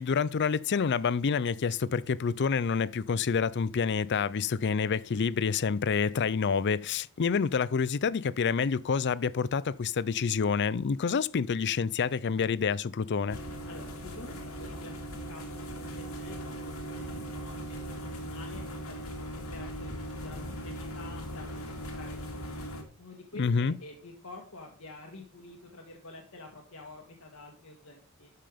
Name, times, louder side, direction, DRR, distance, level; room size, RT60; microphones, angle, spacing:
voice 1, 0.0-13.4 23.4-23.7, left 5 dB, 55° left, 0.5 m, -28 dB
sound 1, 13.3-22.8, equal, 90° left, 2.8 m, -39 dB
voice 2, 13.7-15.0 15.3-28.3, left 2 dB, 70° left, 1.8 m, -49 dB
12.0 x 5.7 x 5.1 m
head